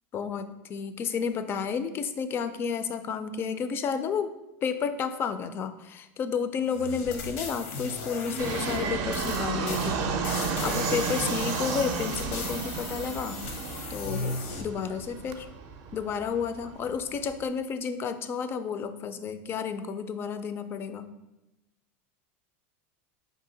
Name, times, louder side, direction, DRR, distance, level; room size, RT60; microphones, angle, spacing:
voice 1, 0.1-4.3 4.6-10.0 10.4-13.4 13.9-15.5 15.9-21.0, left 6 dB, 30° left, 10 dB, 0.3 m, -31 dB
sound 1, 6.7-14.6, left 3 dB, 75° left, 0.7 m, -37 dB
Fixed-wing aircraft airplane, 8.4-17.4, right 5 dB, 50° right, 0.5 m, -32 dB
4.8 x 2.7 x 3.9 m, 0.96 s
supercardioid pair, 125°, 7 cm